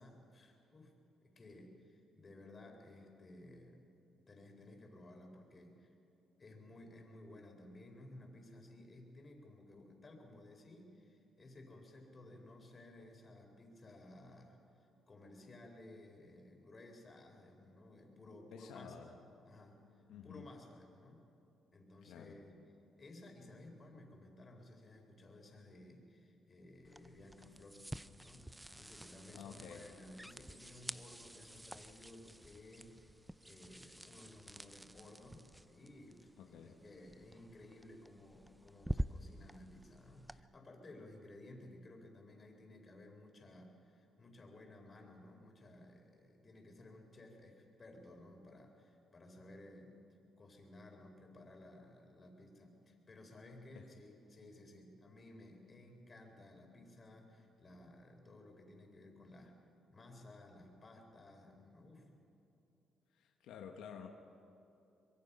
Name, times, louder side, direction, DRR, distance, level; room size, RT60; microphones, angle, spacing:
voice 1, 0.0-3.9 4.2-5.9 6.4-19.1 19.4-21.3 21.7-22.6 23.0-27.9 28.1-59.6 59.9-62.3, left 1 dB, 35° left, 2 dB, 4.4 m, -56 dB
voice 2, 18.5-19.1 20.1-20.5 22.0-22.4 29.3-29.9 36.4-36.7 53.7-53.9 63.1-64.1, left 8 dB, 85° left, 3 dB, 1.3 m, -51 dB
sound 1, 26.8-40.4, right 1 dB, 5° right, 0.5 m, -48 dB
24.5 x 22.0 x 5.7 m, 2.8 s
cardioid pair, 90°, 0 cm